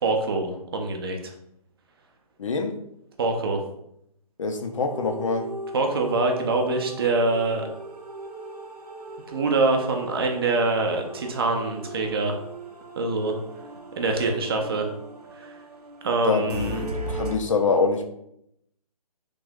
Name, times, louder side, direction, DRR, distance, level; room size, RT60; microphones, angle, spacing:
voice 1, 0.0-1.3 3.2-3.6 5.7-7.7 9.3-12.4 13.0-13.4 14.0-14.9 15.3-15.6 16.0-16.9, right 3 dB, 40° right, 3 dB, 0.6 m, -24 dB
voice 2, 2.4-2.7 4.4-5.5 16.2-18.0, left 4 dB, 55° left, 6 dB, 0.5 m, -25 dB
sound 1, 4.6-17.4, right 1 dB, 80° right, 0.6 m, -38 dB
3.3 x 2.6 x 3.5 m, 0.75 s
figure-of-eight pair, 140°, 20 cm